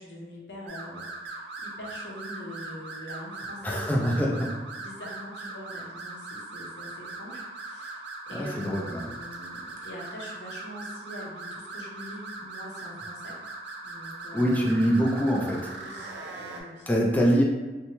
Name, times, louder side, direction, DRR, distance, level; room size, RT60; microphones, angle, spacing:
voice 1, 0.0-4.3 4.8-13.4 13.8-14.8 15.7-16.9, left 1 dB, 75° left, -3 dB, 0.7 m, -43 dB
sound 1, 0.7-16.6, right 3 dB, 65° right, 0.5 m, -40 dB
voice 2, 3.6-4.5 8.3-9.1 14.3-15.7 16.9-17.4, equal, 10° left, -2 dB, 0.3 m, -24 dB
2.7 x 2.1 x 2.9 m, 1.2 s
head